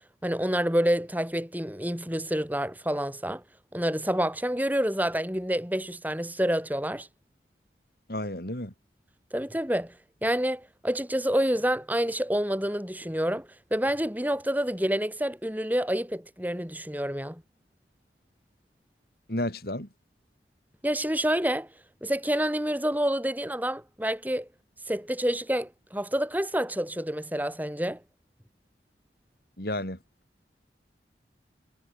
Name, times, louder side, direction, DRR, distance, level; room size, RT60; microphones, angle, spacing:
voice 1, 0.2-3.4 3.7-7.1 9.3-9.9 10.2-17.4 20.8-21.7 22.0-24.5 24.9-28.0, equal, 10° right, 7.4 m, -28 dB
voice 2, 8.1-8.7 19.3-19.9 29.6-30.0, left 1 dB, 55° left, 5.7 m, -31 dB
head